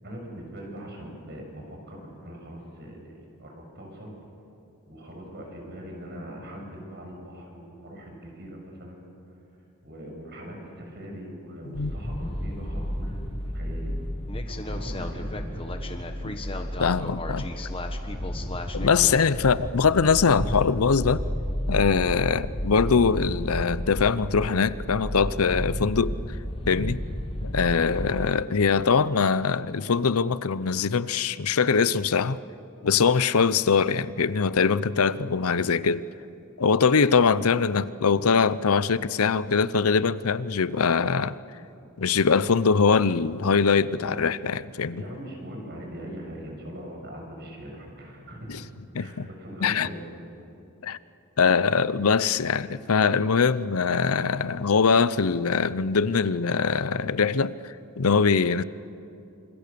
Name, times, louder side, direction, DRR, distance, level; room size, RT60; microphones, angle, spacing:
voice 1, 0.0-3.1 3.4-4.1 4.9-9.1 9.8-13.9 14.5-15.6 44.9-48.7 49.0-50.1, equal, 50° right, 6.6 m, -41 dB
sound 1, 11.7-28.3, equal, 25° left, 1.5 m, -32 dB
voice 2, 16.8-17.5 18.7-21.2 21.7-26.2 26.7-27.0 27.4-32.4 32.8-36.1 36.6-41.4 42.0-45.0 48.5-48.6 48.9-49.3 49.6-49.9 50.8-51.0 51.4-58.6, left 5 dB, 80° left, 0.7 m, -22 dB
28.0 x 26.5 x 6.9 m
head